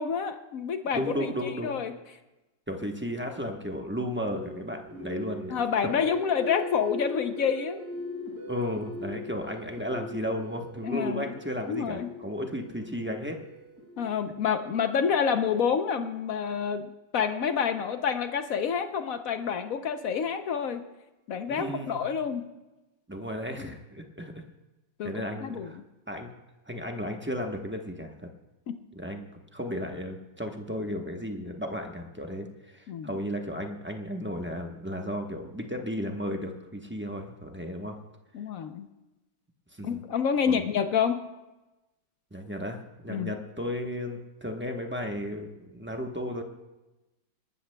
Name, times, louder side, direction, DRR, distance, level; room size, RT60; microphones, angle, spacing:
voice 1, 0.0-1.9 5.5-7.8 10.8-11.3 11.7-12.1 14.0-16.9 17.1-20.8 21.3-22.5 23.6-23.7 25.0-25.1 25.4-25.7 28.7-28.8 32.9-33.2 38.3-38.9 39.8-41.2 43.1-43.4, left 7 dB, 65° left, 9 dB, 0.9 m, -28 dB
voice 2, 0.9-1.8 2.7-5.9 8.2-13.4 21.5-22.0 23.1-24.4 25.0-25.8 26.1-26.3 26.7-28.3 29.0-38.0 39.8-40.0 40.5-40.6 42.3-46.4, equal, 10° right, 3 dB, 0.5 m, -34 dB
sound 1, 4.3-14.4, left 1 dB, 55° right, 5.3 m, -40 dB
27.0 x 12.5 x 2.2 m, 1.0 s
omnidirectional pair, 1.9 m